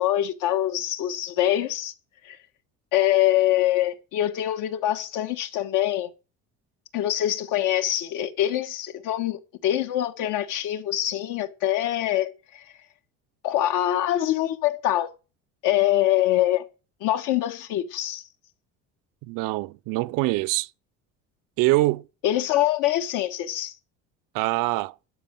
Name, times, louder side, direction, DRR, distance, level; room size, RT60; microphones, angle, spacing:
voice 1, 0.0-1.9 2.2-2.4 2.9-6.1 6.9-12.6 13.4-15.1 15.6-16.6 17.0-18.2 22.2-23.7, left 13 dB, 70° left, 1.4 m, -24 dB
voice 2, 19.2-20.7 21.6-22.0 24.3-24.9, right 20 dB, 75° right, 0.6 m, -24 dB
12.5 x 5.0 x 8.9 m
cardioid pair, 120°, 33 cm